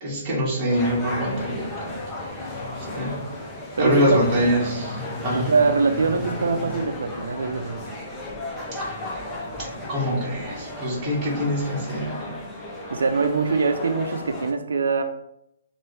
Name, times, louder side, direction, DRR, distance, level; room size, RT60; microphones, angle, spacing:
voice 1, 0.0-2.0 2.4-2.5 2.9-3.2 3.8-5.5 8.7-9.0 9.6-12.3, equal, 15° right, -5 dB, 1.2 m, -25 dB
sound 1, 0.7-14.5, left 1 dB, 10° left, 0.5 m, -34 dB
voice 2, 3.8-4.3 5.3-7.8 12.9-15.0, right 4 dB, 85° right, 6 dB, 0.4 m, -23 dB
4.3 x 2.6 x 3.2 m, 0.77 s
hypercardioid pair, 170°, 0 cm